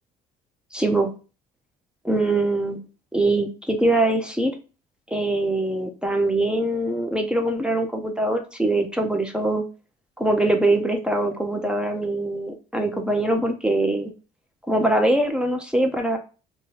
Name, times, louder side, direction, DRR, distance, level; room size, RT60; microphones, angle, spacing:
voice 1, 0.7-1.1 2.0-2.8 3.1-4.5 5.1-9.6 10.2-14.1 14.7-16.2, right 2 dB, 5° right, 3 dB, 0.6 m, -23 dB
2.7 x 2.2 x 3.1 m, 0.33 s
cardioid pair, 110°, 17 cm